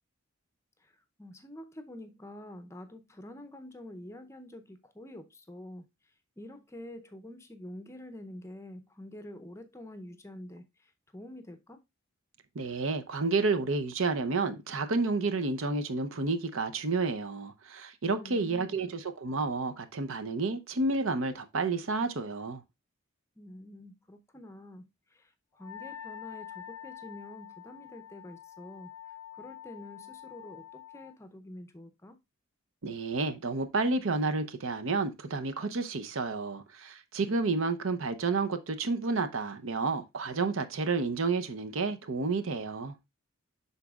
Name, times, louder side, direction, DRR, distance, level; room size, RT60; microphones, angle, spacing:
voice 1, 0.8-5.8 6.4-11.8 18.2-18.8 23.4-32.2, left 1 dB, 15° left, 0.6 m, -47 dB
voice 2, 12.5-22.6 32.8-42.9, right 3 dB, 65° right, 0.7 m, -30 dB
Wind instrument woodwind instrument, 25.6-31.2, left 11 dB, 75° left, 0.6 m, -46 dB
11.0 x 4.0 x 2.3 m
head